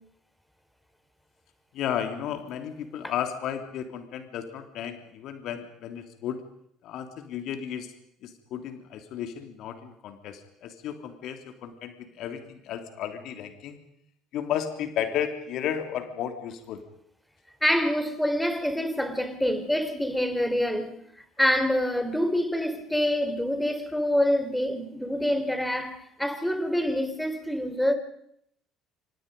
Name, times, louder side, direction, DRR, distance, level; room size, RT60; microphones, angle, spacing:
voice 1, 1.7-6.4 6.8-7.9 8.2-13.8 14.3-16.8, left 9 dB, 60° left, 3.0 m, -33 dB
voice 2, 17.6-21.0 21.4-27.9, equal, 5° left, 4.4 m, -26 dB
28.5 x 26.0 x 5.3 m
hypercardioid pair, 60°, 0 cm